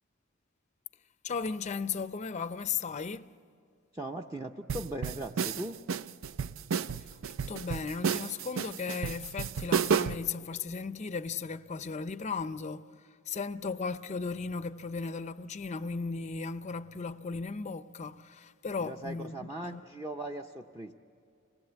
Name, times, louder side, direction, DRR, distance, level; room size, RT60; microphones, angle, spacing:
voice 1, 1.2-3.3 7.5-13.0 13.3-19.8, left 5 dB, 35° left, 0.5 m, -36 dB
voice 2, 3.9-5.8 18.8-20.9, right 1 dB, 15° right, 0.6 m, -39 dB
sound 1, 4.7-10.3, right 6 dB, 85° right, 0.5 m, -31 dB
26.0 x 19.0 x 8.0 m
head